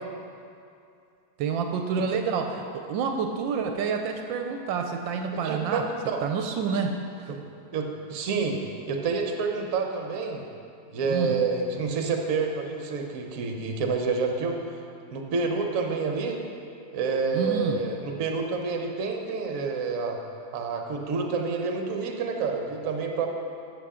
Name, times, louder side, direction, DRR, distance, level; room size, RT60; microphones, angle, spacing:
voice 1, 1.4-5.8 6.2-6.9 11.0-11.5 17.3-17.8, right 6 dB, 80° right, 4 dB, 1.3 m, -28 dB
voice 2, 5.4-6.2 6.7-6.8 7.3-7.4 7.7-8.6 8.9-10.4 10.9-14.6 15.1-16.4 16.9-20.2 20.5-23.3, right 4 dB, 55° right, 2 dB, 1.1 m, -28 dB
14.0 x 5.9 x 3.7 m, 2.5 s
omnidirectional pair, 2.1 m